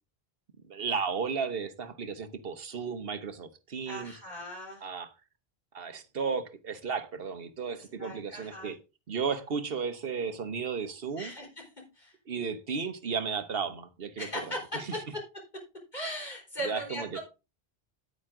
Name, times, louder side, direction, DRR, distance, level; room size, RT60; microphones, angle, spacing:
voice 1, 0.7-4.1 4.8-5.1 5.7-8.8 9.1-11.3 12.3-15.0 16.6-17.1, right 5 dB, 65° right, 1.3 m, -34 dB
voice 2, 3.9-4.9 8.0-8.7 11.2-11.5 11.9-12.1 14.2-15.2 15.9-17.2, equal, 45° left, 4.7 m, -38 dB
9.5 x 9.0 x 3.8 m
omnidirectional pair, 1.0 m